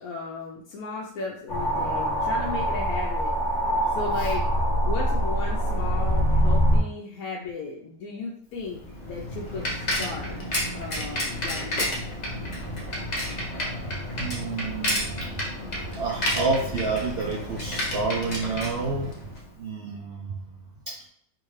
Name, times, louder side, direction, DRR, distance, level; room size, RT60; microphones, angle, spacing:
voice 1, 0.0-3.4 3.9-4.5 4.8-10.3 10.7-12.0, left 3 dB, 75° left, -2 dB, 1.0 m, -35 dB
sound 1, 1.5-6.8, equal, 55° left, 1.2 m, -23 dB
Bicycle, 8.6-19.5, left 1 dB, 35° left, 0.7 m, -31 dB
voice 2, 13.7-15.3 15.9-19.1 19.5-21.0, right 4 dB, 70° right, -1 dB, 0.5 m, -30 dB
3.6 x 2.5 x 3.1 m, 0.64 s
omnidirectional pair, 1.6 m